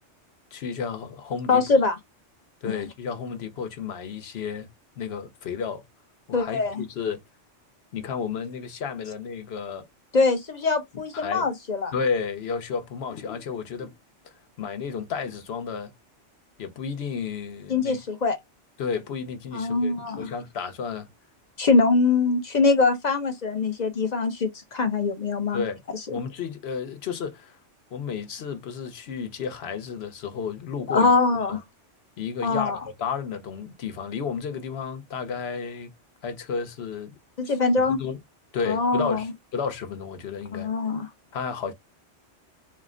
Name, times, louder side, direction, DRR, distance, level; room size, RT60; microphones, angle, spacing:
voice 1, 0.5-1.6 2.6-4.7 5.0-5.8 6.3-7.2 7.9-9.9 11.1-11.5 11.9-13.9 14.2-15.9 16.6-18.0 18.8-21.1 25.5-25.8 26.1-27.6 27.9-31.1 31.5-31.6 32.2-35.9 36.2-37.1 37.4-37.5 37.9-38.2 38.5-40.7 41.3-41.7, left 6 dB, 60° left, 1.0 m, -32 dB
voice 2, 1.5-2.0 2.6-2.8 6.3-6.8 10.1-11.9 17.7-18.4 19.5-20.3 21.6-25.6 26.1-26.2 30.9-31.6 32.4-32.8 37.4-38.0 38.7-39.2 40.5-41.1, left 3 dB, 45° left, 0.7 m, -23 dB
4.1 x 2.1 x 3.6 m
omnidirectional pair, 1.2 m